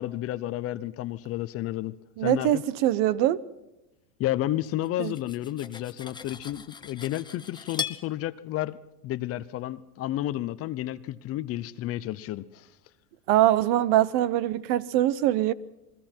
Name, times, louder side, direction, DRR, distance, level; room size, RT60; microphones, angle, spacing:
voice 1, 0.0-2.0 2.2-2.6 4.2-8.8 9.0-12.7, left 14 dB, 30° left, 0.7 m, -31 dB
voice 2, 2.2-3.4 5.0-5.1 13.3-15.5, right 13 dB, 45° right, 0.9 m, -23 dB
Cutlery silverware, 4.8-8.0, left 7 dB, 10° left, 1.1 m, -38 dB
28.5 x 21.5 x 4.5 m
hypercardioid pair, 120°, 45 cm